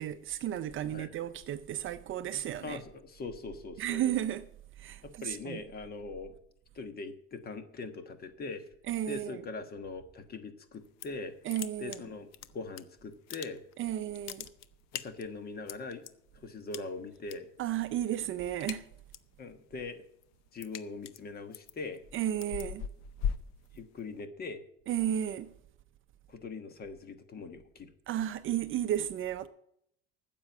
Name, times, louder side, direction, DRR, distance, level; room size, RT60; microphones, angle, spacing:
voice 1, 0.0-2.8 3.8-4.4 4.8-5.6 8.9-9.4 11.4-12.0 13.8-14.5 17.6-18.8 22.1-22.9 24.9-25.5 28.1-29.5, right 11 dB, 40° right, 0.6 m, -33 dB
voice 2, 2.6-4.0 5.0-6.3 6.7-8.6 9.1-11.3 11.8-12.3 12.5-13.6 14.9-16.1 16.3-17.5 19.4-20.0 20.5-22.0 23.7-24.6 26.3-27.9, left 3 dB, 30° left, 1.3 m, -41 dB
sound 1, 10.7-11.2 11.5-12.8 13.1-13.8 14.1-16.1 16.7-17.4 17.7-18.0 18.3-19.3 19.7-24.3, left 8 dB, 60° left, 0.7 m, -39 dB
9.8 x 7.7 x 8.2 m
cardioid pair, 140°, 31 cm